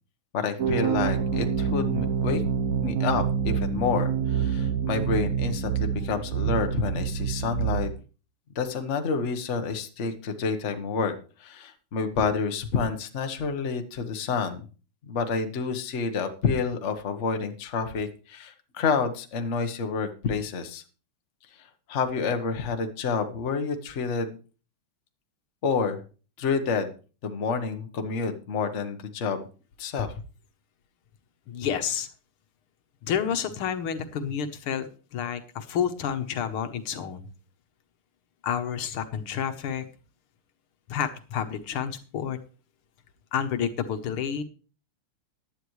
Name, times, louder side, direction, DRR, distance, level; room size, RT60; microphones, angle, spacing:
voice 1, 0.3-2.4 2.8-7.9 8.5-11.1 11.4-14.7 15.0-20.8 21.6-24.4 25.6-26.0 26.4-26.9 27.2-29.5 29.8-30.1, left 5 dB, 40° left, 6 dB, 1.2 m, -29 dB
sound 1, 0.6-7.9, right 7 dB, 60° right, 1.0 m, -27 dB
voice 2, 31.5-32.1 33.0-37.3 38.4-39.9 40.9-42.4 43.3-44.4, left 8 dB, 80° left, 8 dB, 1.9 m, -29 dB
15.0 x 10.5 x 3.2 m, 0.36 s
omnidirectional pair, 2.4 m